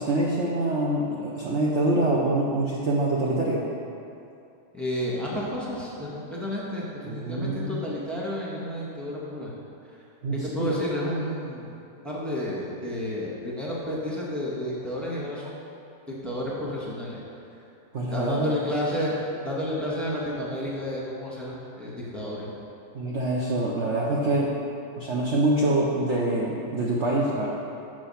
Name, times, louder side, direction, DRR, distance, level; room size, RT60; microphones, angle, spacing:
voice 1, 0.0-3.7 7.1-7.8 10.2-10.8 17.9-18.5 22.9-24.5 25.0-27.5, right 1 dB, 60° right, -4 dB, 0.7 m, -25 dB
voice 2, 4.7-9.5 10.5-11.7 12.0-15.6 16.1-17.2 18.1-19.2 19.4-22.5, equal, ahead, -6 dB, 1.3 m, -31 dB
7.6 x 6.8 x 5.7 m, 2.7 s
omnidirectional pair, 2.3 m